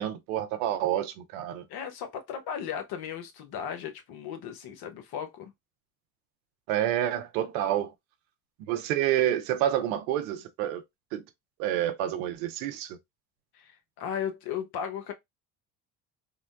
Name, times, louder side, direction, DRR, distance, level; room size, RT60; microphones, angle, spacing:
voice 1, 0.0-1.6 6.7-7.9 8.7-10.8 11.1-11.2 11.6-13.0, right 11 dB, 90° right, 0.7 m, -28 dB
voice 2, 1.7-5.5 13.5-15.1, left 8 dB, 65° left, 1.0 m, -36 dB
3.6 x 2.1 x 2.3 m
supercardioid pair, 75°, 40 cm